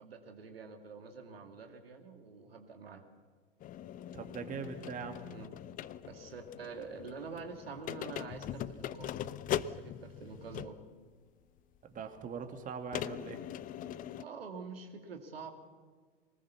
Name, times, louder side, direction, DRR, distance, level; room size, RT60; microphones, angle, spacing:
voice 1, 0.0-3.0 5.3-5.5 6.1-9.2 9.6-10.8 14.2-15.5, right 5 dB, 75° right, 5 dB, 2.3 m, -46 dB
sound 1, 3.6-10.9 11.7-11.8 12.9-14.2, left 11 dB, 30° left, 0.7 m, -41 dB
voice 2, 4.1-5.2 11.9-13.4, right 6 dB, 25° right, 6 dB, 2.3 m, -41 dB
23.5 x 20.0 x 7.0 m, 1.5 s
figure-of-eight pair, 90°, 30 cm